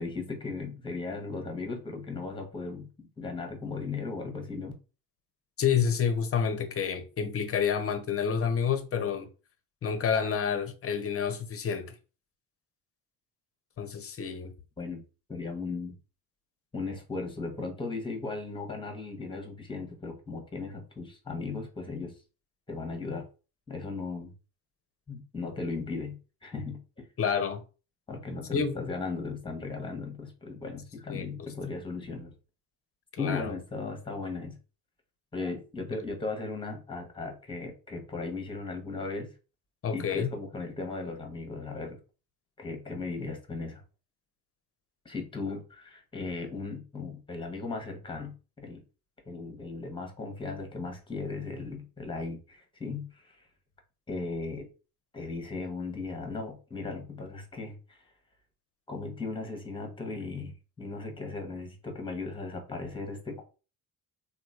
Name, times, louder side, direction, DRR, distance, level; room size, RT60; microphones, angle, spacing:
voice 1, 0.0-4.7 14.8-15.0 15.3-16.0 16.7-22.2 22.7-23.3 23.7-24.3 25.1-27.1 28.1-32.3 33.2-34.6 35.3-39.3 39.9-42.0 42.6-43.8 45.0-48.8 49.3-53.5 54.1-54.7 55.1-58.1 58.9-63.4, left 3 dB, 10° left, 0.9 m, -37 dB
voice 2, 5.6-9.3 9.8-11.9 13.8-14.5 27.2-27.6 28.5-28.7 31.1-31.3 33.1-33.5 35.9-36.0 39.8-40.3, left 7 dB, 30° left, 0.6 m, -29 dB
3.0 x 2.3 x 2.4 m
hypercardioid pair, 55°, 48 cm